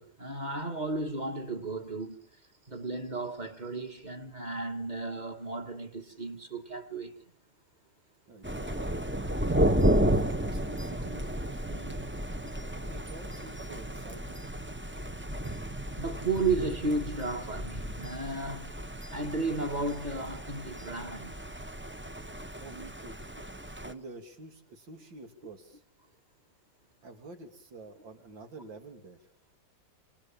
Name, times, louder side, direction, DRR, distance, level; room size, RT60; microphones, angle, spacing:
voice 1, 0.0-2.2 2.7-7.2 16.0-18.8 19.1-21.3, right 3 dB, 25° right, 1.7 m, -34 dB
voice 2, 8.3-9.1 9.5-12.0 12.6-14.4 22.6-23.2 23.8-25.8 27.0-29.2, right 3 dB, 90° right, 3.6 m, -48 dB
Thunder, 8.4-23.9, right 1 dB, 10° right, 0.7 m, -32 dB
28.5 x 26.5 x 7.3 m
omnidirectional pair, 2.0 m